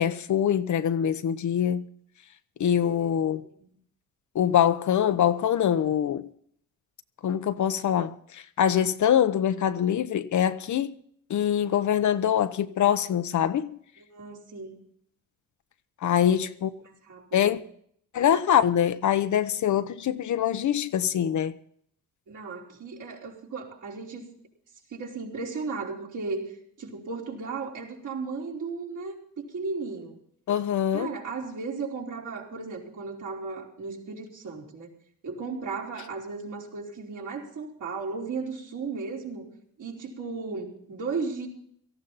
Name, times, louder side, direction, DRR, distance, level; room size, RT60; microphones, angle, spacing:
voice 1, 0.0-1.8 2.6-3.4 4.3-6.3 7.2-10.9 11.3-13.8 16.0-16.7 17.3-17.6 18.1-21.5 30.5-31.1, left 9 dB, 55° left, 1.0 m, -24 dB
voice 2, 14.0-14.7 16.2-16.5 16.8-17.6 22.3-24.3 24.9-26.5 26.8-30.2 30.9-34.9 35.2-39.5 39.8-41.5, right 4 dB, 60° right, 4.6 m, -35 dB
17.5 x 14.5 x 4.1 m
cardioid pair, 100°, 35 cm